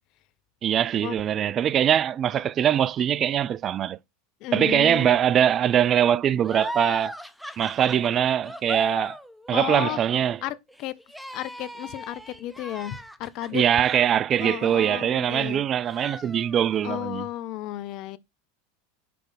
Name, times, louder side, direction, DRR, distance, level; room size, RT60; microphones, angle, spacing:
voice 1, 0.6-4.0 4.5-7.2 7.6-9.2 9.5-10.4 13.5-17.2, right 9 dB, 35° right, 0.3 m, -22 dB
voice 2, 4.4-5.2 9.5-10.0 10.4-10.9 11.3-13.6 14.4-15.6 16.8-18.2, left 14 dB, 50° left, 0.6 m, -33 dB
sound 1, 6.4-15.5 15.9-16.9, equal, ahead, 0.7 m, -38 dB
5.9 x 4.7 x 3.8 m
hypercardioid pair, 90°, 0 cm